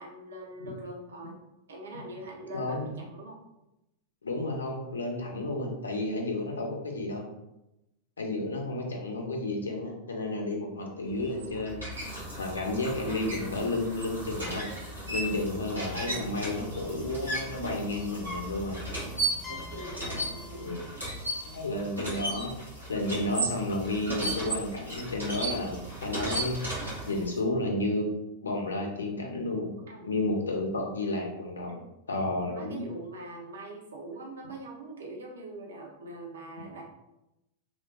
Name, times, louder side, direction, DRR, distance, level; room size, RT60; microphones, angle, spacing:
voice 1, 0.0-1.4 1.7-3.4 19.5-20.7 29.9-30.1 31.7-31.8 32.3-36.8, right 2 dB, 65° right, -1 dB, 0.6 m, -43 dB
voice 2, 4.2-7.2 8.2-12.1 12.3-14.7 15.1-18.8 20.5-20.9 21.5-26.7 27.1-28.1 28.4-29.8 30.0-31.8 32.1-32.9, left 2 dB, 70° left, 1 dB, 0.5 m, -32 dB
sound 1, 11.1-27.4, right 2 dB, 90° right, 1.2 m, -36 dB
sound 2, 14.2-20.6, left 3 dB, 20° right, 0.3 m, -50 dB
sound 3, 19.4-23.1, left 6 dB, 5° left, 0.7 m, -49 dB
3.0 x 2.0 x 2.6 m, 0.91 s
figure-of-eight pair, 90°, 0 cm